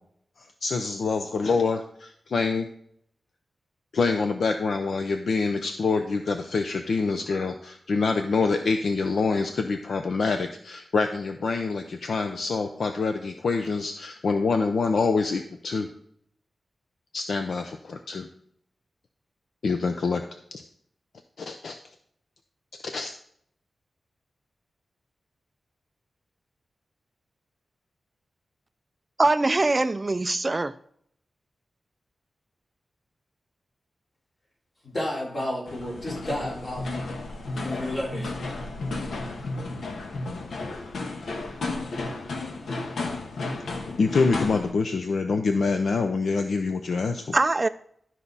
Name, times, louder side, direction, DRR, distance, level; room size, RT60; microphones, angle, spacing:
voice 1, 0.4-2.7 3.9-15.9 17.1-18.3 19.6-20.2 20.5-20.6 21.4-21.8 22.8-23.1 44.0-47.3, left 4 dB, 70° left, 6 dB, 0.7 m, -26 dB
voice 2, 29.2-30.7 47.3-47.7, right 2 dB, 25° right, 13 dB, 0.3 m, -22 dB
voice 3, 34.8-37.1 37.4-38.3, left 1 dB, 45° left, -4 dB, 3.9 m, -32 dB
sound 1, 35.7-44.7, left 3 dB, 85° left, 1.3 m, -33 dB
12.5 x 5.7 x 4.1 m, 0.66 s
wide cardioid pair, 135°, 0 cm